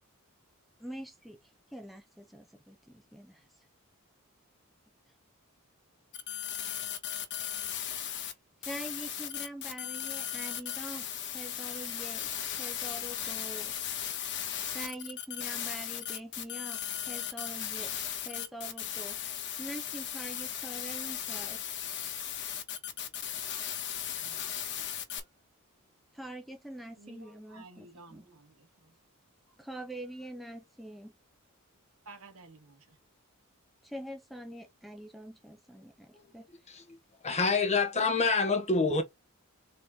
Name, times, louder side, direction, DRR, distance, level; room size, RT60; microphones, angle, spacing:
voice 1, 0.8-3.7 8.6-13.7 14.7-21.6 26.1-28.4 29.6-31.1 33.8-36.5, right 1 dB, ahead, 0.7 m, -45 dB
sound 1, 6.1-8.3 8.6-25.2, left 9 dB, 55° left, 1.2 m, -37 dB
voice 2, 24.2-24.5 27.0-28.9 32.0-33.0, right 3 dB, 70° right, 1.6 m, -53 dB
voice 3, 37.2-39.0, left 4 dB, 30° left, 1.3 m, -26 dB
4.0 x 3.2 x 3.7 m
head